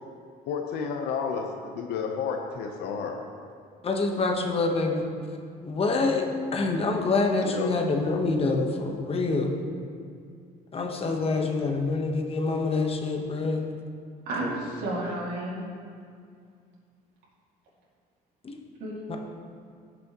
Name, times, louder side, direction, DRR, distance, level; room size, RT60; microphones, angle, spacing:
voice 1, 0.5-3.2 7.4-7.7, left 6 dB, 80° left, 3 dB, 0.9 m, -31 dB
voice 2, 3.8-5.0 5.6-9.5 10.7-13.7 14.4-14.5 18.4-18.6 19.1-19.2, left 3 dB, 35° left, 2 dB, 1.2 m, -26 dB
voice 3, 14.3-15.7 18.8-18.9, right 2 dB, 75° right, -6 dB, 2.4 m, -31 dB
16.5 x 6.2 x 3.0 m, 2.3 s
cardioid pair, 110°, 17 cm